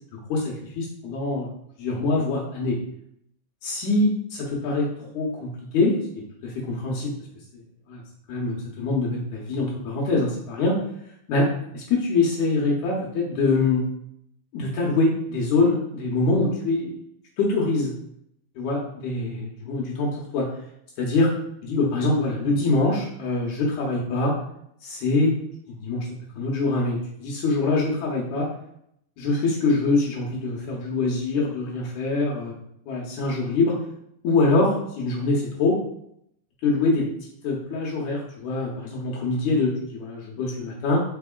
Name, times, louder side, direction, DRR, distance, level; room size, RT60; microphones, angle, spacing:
voice 1, 0.1-1.5 1.8-2.8 3.6-5.9 6.4-7.1 7.9-8.0 8.3-10.8 11.3-11.5 11.7-13.8 14.5-16.9 17.4-17.9 18.5-20.5 21.0-21.3 21.6-24.3 24.8-25.3 25.7-26.0 26.4-28.5 29.2-32.5 32.9-33.7 34.2-35.8 36.6-37.1 37.4-41.0, left 3 dB, 75° left, -3 dB, 1.8 m, -24 dB
4.6 x 4.2 x 2.3 m, 0.73 s
omnidirectional pair, 4.2 m